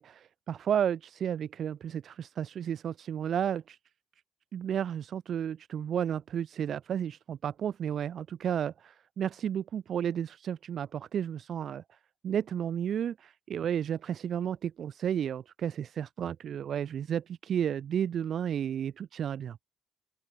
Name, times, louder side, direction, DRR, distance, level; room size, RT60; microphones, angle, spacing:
voice 1, 0.0-3.8 4.5-12.0 12.2-19.6, right 9 dB, 60° right, 1.2 m, -32 dB
open air
cardioid pair, 90°, 0 cm